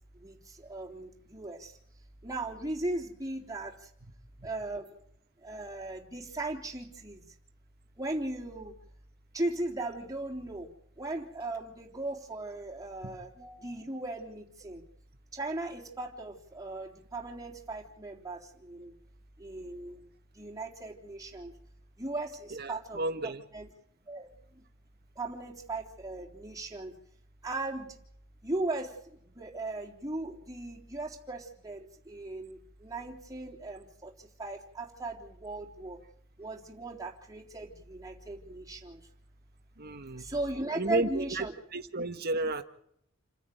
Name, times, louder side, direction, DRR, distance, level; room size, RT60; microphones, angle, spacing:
voice 1, 0.1-1.8 2.2-3.9 4.4-4.9 5.4-7.3 8.0-8.7 9.3-14.8 15.3-18.9 19.4-21.5 22.0-23.0 23.5-23.7 24.1-24.6 25.2-26.9 27.4-28.0 28.4-36.0 36.4-39.1 40.2-41.5, right 2 dB, 15° right, 0 dB, 3.6 m, -38 dB
voice 2, 22.5-23.4 39.8-40.3 40.8-41.5 41.7-42.6, right 2 dB, 45° right, 7 dB, 1.7 m, -32 dB
29.5 x 10.0 x 9.4 m, 0.71 s
head